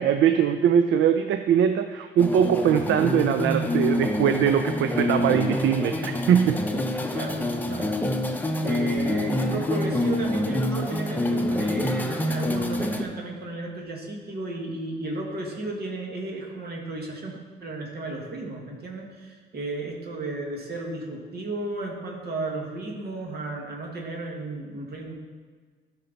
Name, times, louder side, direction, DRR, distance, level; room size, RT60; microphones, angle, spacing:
voice 1, 0.0-6.6, right 8 dB, 75° right, 8 dB, 0.5 m, -21 dB
sound 1, 2.2-13.0, left 1 dB, 10° left, 0.9 m, -26 dB
voice 2, 7.1-7.9 8.3-25.1, right 2 dB, 55° right, 0 dB, 1.9 m, -34 dB
12.0 x 5.4 x 4.0 m, 1.5 s
cardioid pair, 90°, 20 cm